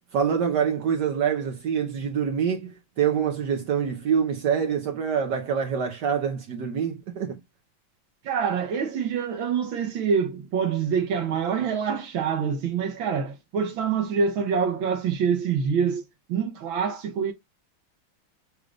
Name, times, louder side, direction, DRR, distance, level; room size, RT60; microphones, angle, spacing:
voice 1, 0.1-7.4, right 7 dB, 65° right, 1.3 m, -25 dB
voice 2, 8.3-16.0 16.3-17.3, right 6 dB, 85° right, 1.7 m, -26 dB
6.3 x 2.4 x 3.2 m
omnidirectional pair, 2.1 m